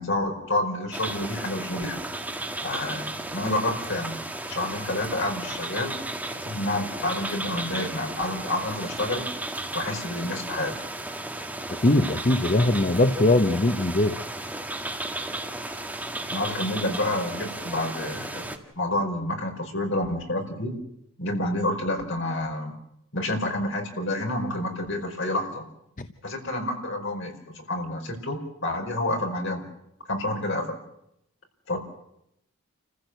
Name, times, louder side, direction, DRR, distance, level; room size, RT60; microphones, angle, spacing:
voice 1, 0.0-2.0 2.6-4.2 4.5-5.9 6.4-9.3 9.7-10.7 16.3-20.8 21.2-22.7 23.1-25.6 26.2-29.6 30.1-30.8 31.7-31.8, left 1 dB, 60° left, 3 dB, 5.0 m, -29 dB
sound 1, 0.9-18.6, right 2 dB, 10° right, 1.8 m, -34 dB
voice 2, 11.7-14.2 26.0-26.1, left 2 dB, 40° left, 8 dB, 0.8 m, -21 dB
29.0 x 15.0 x 7.9 m, 0.80 s
head